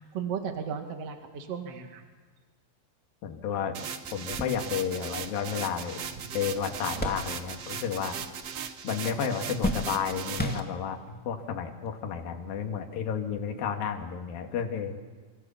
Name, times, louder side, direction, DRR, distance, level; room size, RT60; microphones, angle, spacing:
voice 1, 0.1-2.0 6.2-6.4 6.9-7.1, right 7 dB, 45° right, 4 dB, 2.8 m, -35 dB
voice 2, 3.2-6.0 6.3-8.2 8.8-15.0, left 7 dB, 65° left, 3 dB, 3.6 m, -32 dB
sound 1, 3.5-3.6 4.0-7.8 8.1-8.8 9.1-11.2 11.9-12.0 13.3-13.5, equal, 5° left, 0.9 m, -36 dB
sound 2, 3.7-10.6, right 7 dB, 70° right, 1.5 m, -38 dB
27.0 x 25.0 x 7.1 m, 1.5 s
omnidirectional pair, 4.7 m